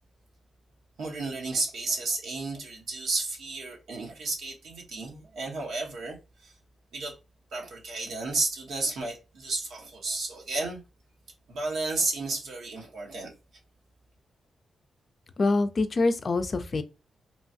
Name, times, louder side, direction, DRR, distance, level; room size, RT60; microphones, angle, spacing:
voice 1, 1.0-6.5 6.9-7.2 7.5-10.8 11.5-13.4, right 3 dB, 80° right, 0.9 m, -32 dB
voice 2, 15.4-16.8, left 3 dB, 50° left, 0.4 m, -25 dB
3.1 x 2.2 x 2.6 m
supercardioid pair, 50°, 0 cm